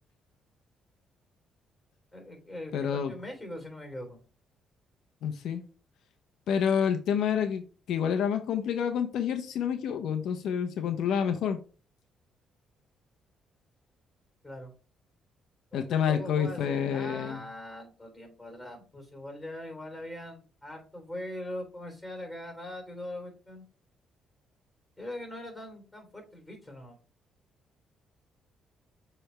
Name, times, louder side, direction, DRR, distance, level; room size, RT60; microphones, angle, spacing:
voice 1, 2.1-4.2 14.4-14.7 15.7-23.6 25.0-27.0, left 1 dB, 10° left, 3.4 m, -41 dB
voice 2, 2.7-3.1 5.2-5.6 6.5-11.6 15.7-17.4, left 8 dB, 80° left, 0.7 m, -28 dB
6.7 x 3.4 x 4.5 m
cardioid pair, 90°, 0 cm